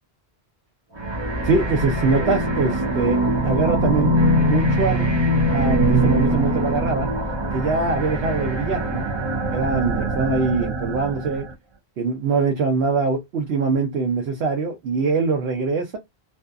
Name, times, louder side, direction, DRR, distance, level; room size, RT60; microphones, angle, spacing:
sound 1, 0.9-11.5, right 1 dB, 30° right, 0.6 m, -22 dB
voice 1, 1.4-3.2 3.4-5.1 5.5-7.1 7.5-9.1 9.5-11.5 12.0-16.0, right 4 dB, 75° right, 0.9 m, -23 dB
2.6 x 2.3 x 2.2 m
omnidirectional pair, 1.1 m